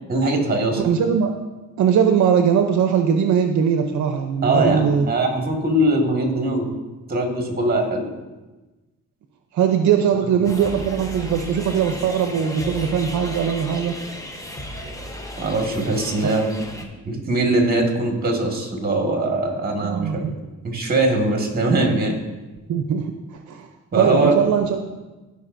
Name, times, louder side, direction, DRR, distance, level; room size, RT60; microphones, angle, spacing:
voice 1, 0.1-0.9 4.4-6.7 7.1-8.1 10.2-10.4 15.4-16.5 17.0-20.2 20.6-22.2 23.9-24.4, right 2 dB, 30° right, 1 dB, 1.7 m, -21 dB
voice 2, 0.8-1.3 1.8-5.0 9.5-13.9 19.8-20.3 22.7-23.1 23.5-23.7 23.9-25.0, right 7 dB, 70° right, 5 dB, 0.7 m, -20 dB
sound 1, 10.4-16.8, equal, 10° left, 0.9 m, -34 dB
15.5 x 5.3 x 2.6 m, 1.1 s
cardioid pair, 110°, 30 cm